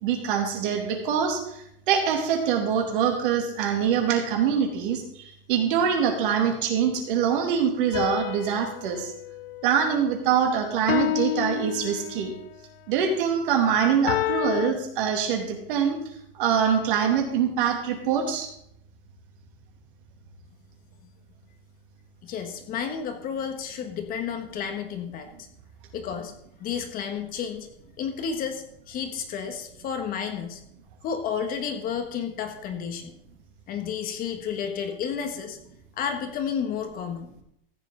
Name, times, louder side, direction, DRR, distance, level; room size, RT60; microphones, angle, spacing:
voice 1, 0.0-9.1 9.6-12.3 12.9-16.0 16.3-18.5, right 7 dB, 60° right, 2 dB, 2.7 m, -24 dB
sound 1, 7.9-10.3 10.9-12.4 14.1-14.7, left 14 dB, 75° left, 0.5 m, -30 dB
voice 2, 22.2-25.3 25.9-26.3 26.6-27.7 28.0-30.6 31.0-33.1 33.7-35.6 36.0-37.3, left 7 dB, 30° left, 6 dB, 1.4 m, -31 dB
14.5 x 8.2 x 3.8 m, 0.74 s
supercardioid pair, 140°, 29 cm